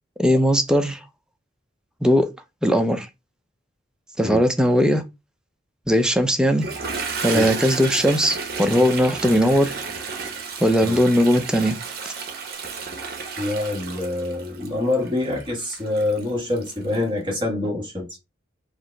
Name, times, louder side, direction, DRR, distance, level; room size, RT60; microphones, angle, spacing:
voice 1, 0.2-1.0 2.0-2.3 2.6-3.1 4.2-5.0 5.9-6.7 7.2-9.7 10.6-11.8, equal, 5° right, 0.5 m, -19 dB
Toilet flush, 6.5-17.0, right 5 dB, 50° right, 1.0 m, -32 dB
voice 2, 13.4-18.2, left 2 dB, 25° right, 1.2 m, -26 dB
4.8 x 2.0 x 4.5 m
head